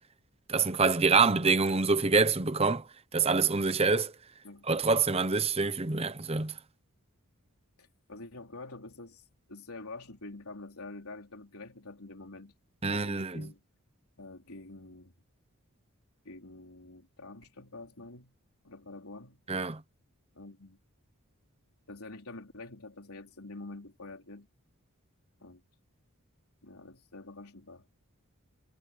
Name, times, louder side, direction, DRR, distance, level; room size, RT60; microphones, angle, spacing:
voice 1, 0.5-2.9 3.1-4.1 4.7-6.6 12.8-13.5 19.5-19.8, right 4 dB, 25° right, 0.9 m, -26 dB
voice 2, 7.8-12.5 12.9-13.6 14.2-15.1 16.2-18.3 18.6-19.4 20.3-20.8 21.9-24.5 25.4-25.6 26.6-27.9, left 2 dB, 75° left, 3.7 m, -47 dB
head